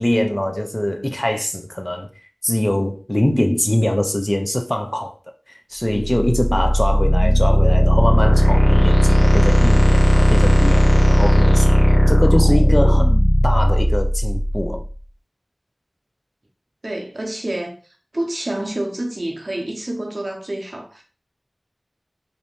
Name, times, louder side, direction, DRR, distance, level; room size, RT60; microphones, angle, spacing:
voice 1, 0.0-2.1 2.4-5.1 5.5-13.2 13.4-14.8, left 1 dB, 20° left, 0.3 m, -22 dB
sound 1, 5.9-14.8, equal, 90° left, 0.6 m, -15 dB
voice 2, 16.8-17.8 18.1-21.0, right 1 dB, 50° right, 0.6 m, -28 dB
2.6 x 2.0 x 2.9 m
wide cardioid pair, 55°, 0 cm